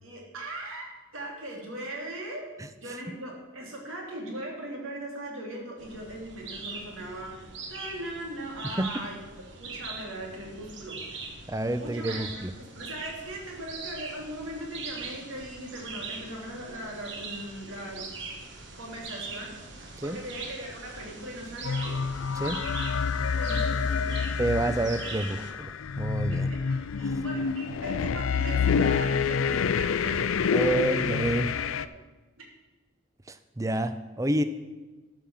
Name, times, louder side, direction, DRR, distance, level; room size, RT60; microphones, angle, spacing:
voice 1, 0.0-2.5 2.8-7.4 7.7-9.1 9.6-11.3 11.8-12.4 12.8-18.1 18.8-22.0 23.4-24.3 26.3-31.1, right 1 dB, 90° right, -1 dB, 3.1 m, -39 dB
voice 2, 2.6-3.0 8.6-9.0 11.5-12.5 20.0-20.2 22.3-22.6 24.4-25.7 26.0-26.5 27.0-27.2 30.5-31.5 33.3-34.4, right 1 dB, 15° right, 11 dB, 0.5 m, -29 dB
sound 1, 5.8-25.5, right 4 dB, 60° right, 1.5 m, -42 dB
sound 2, 21.6-31.9, left 6 dB, 90° left, 0.4 m, -28 dB
12.5 x 5.6 x 7.5 m, 1.2 s
head